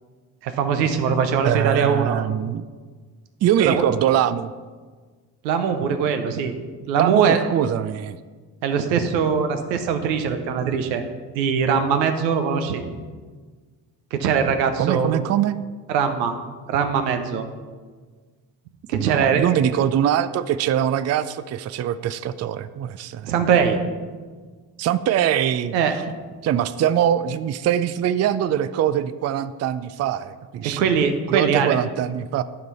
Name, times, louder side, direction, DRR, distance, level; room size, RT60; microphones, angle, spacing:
voice 1, 0.4-2.2 3.6-3.8 5.4-6.5 6.9-7.4 8.6-11.0 11.3-12.8 14.1-15.2 15.9-16.4 16.7-17.5 18.9-19.5 23.3-23.8 25.7-26.0 30.6-31.8, right 6 dB, 85° right, 7 dB, 0.7 m, -21 dB
voice 2, 1.4-2.6 3.4-4.5 7.0-8.2 14.8-15.6 18.9-23.3 24.8-25.7 26.4-30.8 31.3-32.4, right 10 dB, 35° right, 13 dB, 0.4 m, -22 dB
11.0 x 3.8 x 5.5 m, 1.5 s
hypercardioid pair, 40°, 50 cm